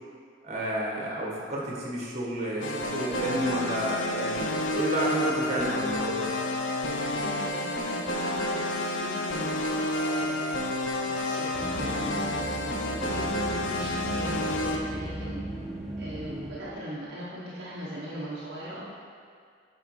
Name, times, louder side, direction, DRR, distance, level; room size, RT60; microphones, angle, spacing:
voice 1, 0.4-6.3, right 1 dB, 35° right, -4 dB, 1.4 m, -31 dB
sound 1, 2.6-14.8, left 1 dB, 85° left, 0.6 m, -30 dB
voice 2, 7.1-10.5 11.0-12.0 12.9-15.4 16.0-18.9, equal, 55° right, -8 dB, 1.0 m, -40 dB
sound 2, 11.5-17.0, right 1 dB, ahead, 0.6 m, -36 dB
9.1 x 4.9 x 3.2 m, 2.1 s
head